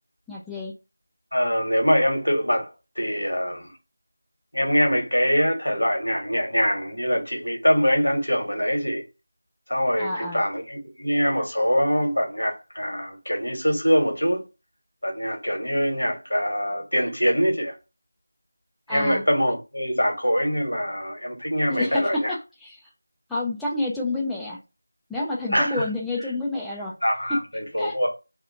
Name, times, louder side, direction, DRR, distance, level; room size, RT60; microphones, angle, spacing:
voice 1, 0.3-0.7 10.0-10.4 18.9-19.2 21.7-22.8 23.3-24.6 25.1-26.9 27.8-28.0, left 2 dB, ahead, 0.3 m, -29 dB
voice 2, 1.3-2.7 3.0-3.7 4.5-9.0 9.7-14.4 15.0-17.7 18.9-22.3 25.5-25.8 27.0-28.1, equal, 75° left, 1.3 m, -23 dB
2.8 x 2.3 x 2.7 m
figure-of-eight pair, 170°, 0 cm